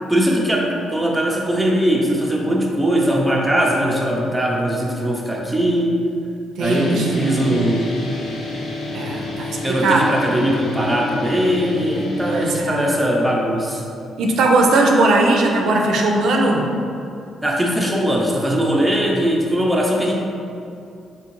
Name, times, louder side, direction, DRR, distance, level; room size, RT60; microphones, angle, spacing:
voice 1, 0.1-6.0 6.6-7.9 9.6-13.8 17.4-20.2, equal, 5° right, -2 dB, 0.5 m, -20 dB
sound 1, 6.6-12.6, left 2 dB, 70° left, 0.7 m, -29 dB
voice 2, 6.6-7.7 8.9-10.1 12.3-12.8 14.2-16.7, right 2 dB, 75° right, 0 dB, 0.4 m, -19 dB
3.5 x 2.8 x 2.9 m, 2.5 s
cardioid pair, 90°, 0 cm